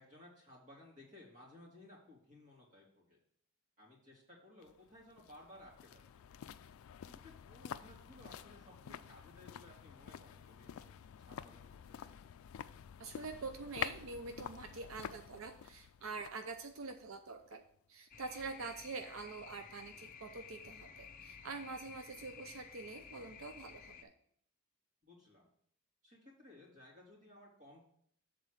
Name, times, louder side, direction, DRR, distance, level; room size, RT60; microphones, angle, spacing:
voice 1, 0.0-3.2 3.8-6.2 7.1-10.9 11.2-12.2 18.3-18.7 25.0-25.5 26.0-27.8, left 1 dB, 35° right, -3 dB, 2.7 m, -59 dB
sound 1, 4.6-17.8 18.1-18.2, left 9 dB, 80° left, 0.3 m, -49 dB
voice 2, 13.0-17.6 17.9-24.1, right 3 dB, 75° right, 7 dB, 0.6 m, -46 dB
sound 2, 18.1-24.0, left 6 dB, 40° left, 0.7 m, -54 dB
7.6 x 4.0 x 6.4 m, 0.66 s
head